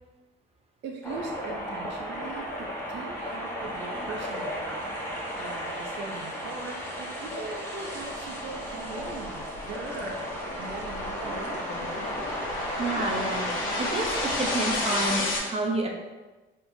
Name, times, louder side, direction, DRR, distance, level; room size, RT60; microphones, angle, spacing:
voice 1, 0.8-4.9 5.3-10.2 10.6-11.7, right 3 dB, 65° right, 2 dB, 0.6 m, -40 dB
sound 1, 1.0-15.2, equal, 15° left, 1.2 m, -34 dB
sound 2, 8.4-15.4, left 2 dB, 85° left, 1.0 m, -33 dB
voice 2, 12.8-15.9, right 2 dB, 30° right, 1 dB, 0.7 m, -30 dB
4.4 x 3.7 x 2.7 m, 1.2 s
cardioid pair, 90°, 20 cm